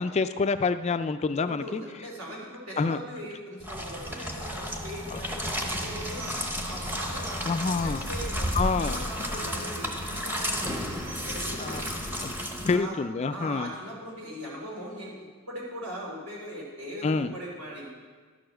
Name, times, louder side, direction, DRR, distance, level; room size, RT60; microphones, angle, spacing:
voice 1, 0.0-1.8 2.8-3.0 5.1-5.2 7.5-8.0 8.6-9.1 11.6-11.8 12.2-12.3 12.6-13.7 17.0-17.3, left 4 dB, 30° left, 10 dB, 0.3 m, -27 dB
voice 2, 1.4-7.4 7.8-11.9 12.7-12.9 13.3-15.1 15.5-17.9, equal, 75° right, -3 dB, 3.4 m, -40 dB
sound 1, 3.6-12.8, equal, 10° right, 0.8 m, -33 dB
Bird, 5.6-12.3, equal, 35° right, 2.6 m, -37 dB
12.0 x 6.8 x 6.3 m, 1.5 s
head